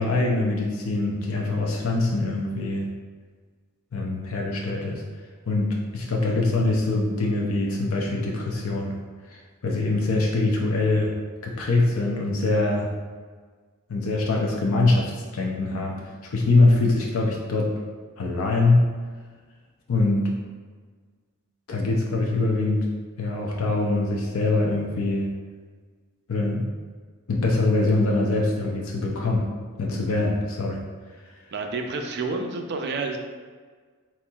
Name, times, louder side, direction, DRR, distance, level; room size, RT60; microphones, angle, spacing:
voice 1, 0.0-2.9 3.9-5.0 5.5-9.0 9.3-11.2 11.4-12.9 13.9-17.7 18.2-18.9 19.9-20.3 21.7-22.9 23.2-25.3 26.3-26.7 27.3-29.5 29.8-30.8 31.2-31.3, left 2 dB, 70° left, -1 dB, 0.5 m, -23 dB
voice 2, 31.5-33.2, right 3 dB, 50° right, 4 dB, 0.4 m, -29 dB
4.2 x 3.7 x 2.3 m, 1.5 s
head